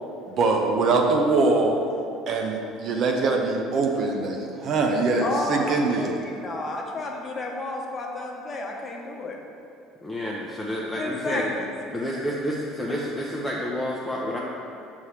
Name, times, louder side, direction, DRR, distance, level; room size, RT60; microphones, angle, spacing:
voice 1, 0.3-1.8 2.3-6.1, right 3 dB, 55° right, 1 dB, 0.7 m, -23 dB
voice 2, 5.2-9.4 11.0-11.6, left 2 dB, 35° left, 0 dB, 0.9 m, -31 dB
voice 3, 10.0-11.5 11.9-14.4, equal, 5° left, -4 dB, 0.6 m, -29 dB
5.7 x 3.1 x 5.7 m, 2.5 s
supercardioid pair, 90°, 0 cm